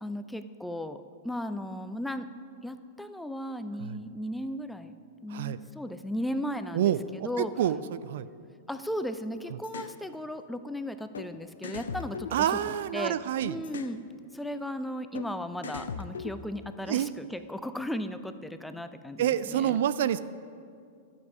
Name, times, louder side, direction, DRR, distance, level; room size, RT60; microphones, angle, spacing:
voice 1, 0.0-2.3 2.6-4.9 5.2-7.5 8.7-13.2 13.4-14.0 14.3-19.8, equal, 5° left, 10 dB, 0.5 m, -36 dB
voice 2, 6.7-8.3 12.3-13.6 16.9-17.1 19.2-20.2, right 10 dB, 55° right, 15 dB, 0.3 m, -28 dB
sound 1, 9.6-10.0 11.1-11.3 11.6-13.0 13.6-14.0 15.1-15.3 15.6-16.7, left 5 dB, 70° left, 0.6 m, -39 dB
11.5 x 6.8 x 6.0 m, 2.3 s
figure-of-eight pair, 100°, 0 cm